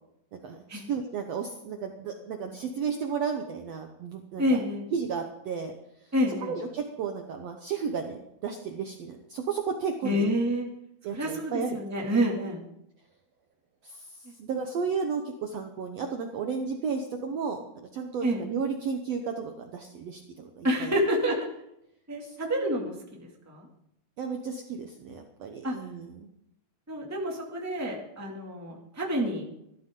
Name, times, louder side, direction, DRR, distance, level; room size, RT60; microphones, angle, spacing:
voice 1, 0.3-4.6 4.9-5.7 6.4-10.3 11.0-11.8 13.8-14.1 14.4-17.6 17.9-21.0 22.2-22.3 24.2-26.3, right 6 dB, 80° right, 4 dB, 1.4 m, -33 dB
voice 2, 4.4-4.8 6.1-6.5 10.0-10.7 11.1-12.6 18.2-18.4 20.6-21.4 22.1-23.7 25.6-25.7 26.9-29.4, equal, 5° right, -1 dB, 1.5 m, -28 dB
17.0 x 13.5 x 3.8 m, 0.81 s
omnidirectional pair, 4.4 m